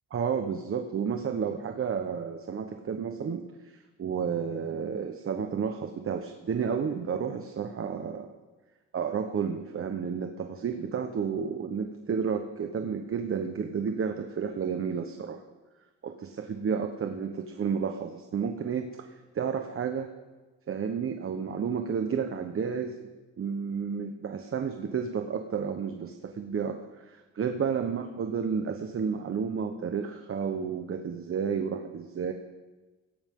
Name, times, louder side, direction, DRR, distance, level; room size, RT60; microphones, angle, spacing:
voice 1, 0.1-3.7 4.0-8.3 8.9-15.4 16.0-19.0 19.3-20.1 20.7-23.1 23.4-32.3, right 6 dB, 45° right, 5 dB, 1.2 m, -31 dB
20.5 x 16.5 x 3.8 m, 1.2 s
cardioid pair, 90°, 30 cm